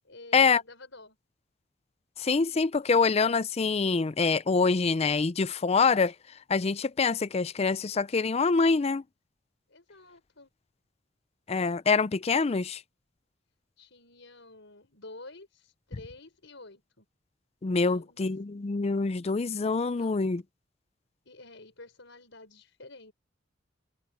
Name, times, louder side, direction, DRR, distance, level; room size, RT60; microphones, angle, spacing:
voice 1, 0.0-1.2 9.7-10.5 13.8-17.0 17.8-18.3 19.8-20.2 21.2-23.1, left 2 dB, 75° left, 5.0 m, -50 dB
voice 2, 2.2-6.1 6.5-9.0 11.5-12.8 17.6-20.4, left 4 dB, 30° left, 0.4 m, -25 dB
open air
head